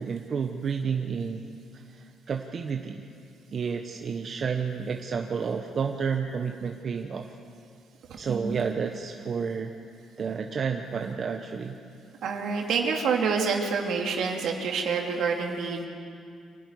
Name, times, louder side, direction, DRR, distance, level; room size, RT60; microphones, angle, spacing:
voice 1, 0.0-1.5 1.9-3.0 3.5-7.3 8.2-9.7 10.2-11.8, right 6 dB, 50° right, 4 dB, 1.0 m, -30 dB
voice 2, 8.1-8.6 12.2-15.8, right 5 dB, 75° right, 1 dB, 2.8 m, -27 dB
26.0 x 11.5 x 9.9 m, 2.4 s
cardioid pair, 90°, 0 cm